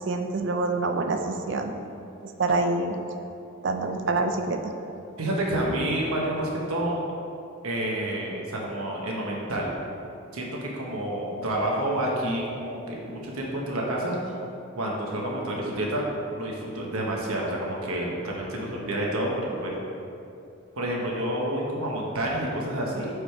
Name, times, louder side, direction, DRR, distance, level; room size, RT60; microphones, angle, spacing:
voice 1, 0.1-1.7 2.2-2.9 3.6-4.7, right 3 dB, 55° right, 6 dB, 0.4 m, -26 dB
voice 2, 5.2-7.0 7.6-9.7 10.3-14.3 14.8-16.1 16.3-19.7 20.7-23.1, right 1 dB, 90° right, -2 dB, 1.0 m, -29 dB
5.0 x 4.9 x 4.4 m, 2.7 s
head